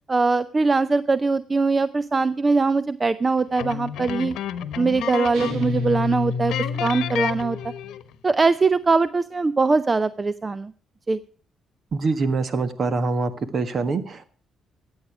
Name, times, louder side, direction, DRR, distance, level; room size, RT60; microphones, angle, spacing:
voice 1, 0.1-4.3 4.8-6.5 6.8-7.6 8.2-10.7 11.1-11.2, right 4 dB, 25° right, 15 dB, 0.5 m, -21 dB
sound 1, 3.6-5.8 6.0-6.1 6.5-8.1, left 10 dB, 80° left, 1.0 m, -31 dB
sound 2, 5.3-7.9, left 4 dB, 85° right, 3.2 m, -29 dB
voice 2, 11.9-14.2, right 3 dB, 50° right, 12 dB, 1.5 m, -24 dB
14.0 x 8.8 x 6.1 m, 0.43 s
cardioid pair, 90°, 0 cm